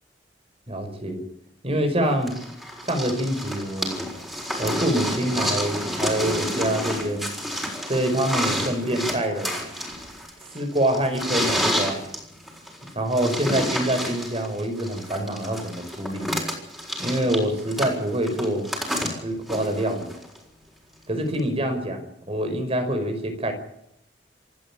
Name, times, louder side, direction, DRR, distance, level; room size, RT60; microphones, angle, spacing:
voice 1, 0.7-1.2 1.6-2.4 2.8-4.0 4.6-7.3 7.9-9.6 10.5-12.0 12.9-16.3 17.0-18.7 19.2-20.1 21.1-23.5, right 1 dB, 35° right, 6 dB, 5.3 m, -25 dB
sound 1, 2.3-20.4 21.4-21.5, equal, ahead, 6.5 m, -29 dB
28.0 x 12.5 x 8.8 m, 0.79 s
head